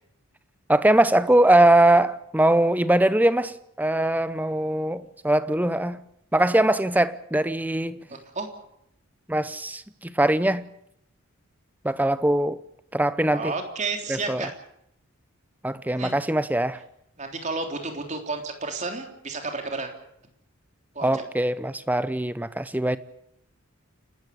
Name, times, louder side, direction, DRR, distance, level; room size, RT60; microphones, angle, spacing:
voice 1, 0.7-6.0 6.3-8.1 9.3-10.6 11.8-12.6 12.9-13.5 14.1-14.5 15.6-16.8 21.0-23.0, right 1 dB, 10° right, 0.7 m, -21 dB
voice 2, 8.1-8.5 13.3-14.5 16.0-16.1 17.2-19.9 20.9-21.2, right 3 dB, 35° right, 3.4 m, -31 dB
29.0 x 13.0 x 8.5 m
head